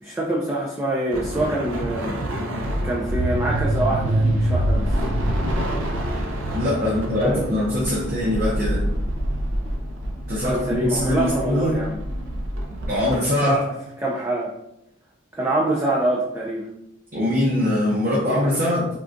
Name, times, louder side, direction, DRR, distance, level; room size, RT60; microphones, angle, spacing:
voice 1, 0.0-2.1 2.8-4.9 6.8-7.5 10.4-12.0 13.4-13.6 14.0-14.5 15.4-16.7, right 1 dB, 15° right, -4 dB, 0.3 m, -25 dB
sound 1, 1.1-13.2, right 1 dB, 85° right, 0.5 m, -26 dB
voice 2, 6.5-8.8 10.3-11.8 12.9-13.6 17.1-18.9, left 1 dB, 45° right, -5 dB, 0.7 m, -22 dB
3.7 x 2.2 x 2.5 m, 0.82 s
head